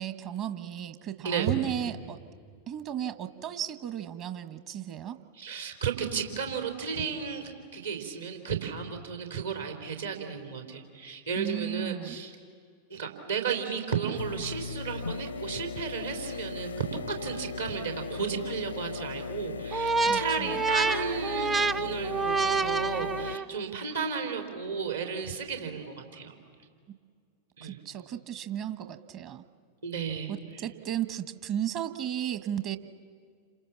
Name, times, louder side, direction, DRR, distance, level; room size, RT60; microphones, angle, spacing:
voice 1, 0.0-2.2 2.7-5.2 11.3-12.2 20.0-20.6 27.6-29.4 30.3-32.8, right 10 dB, 40° right, 11 dB, 1.4 m, -34 dB
voice 2, 1.2-1.6 5.4-12.3 12.9-16.7 17.1-26.3 27.6-27.8 29.8-30.3, right 6 dB, 70° right, 4 dB, 3.8 m, -33 dB
sound 1, 14.2-23.4, left 5 dB, 80° left, 0.7 m, -38 dB
sound 2, 19.7-23.6, right 4 dB, 15° right, 0.6 m, -28 dB
30.0 x 27.0 x 7.3 m, 2.1 s
figure-of-eight pair, 90°, 0 cm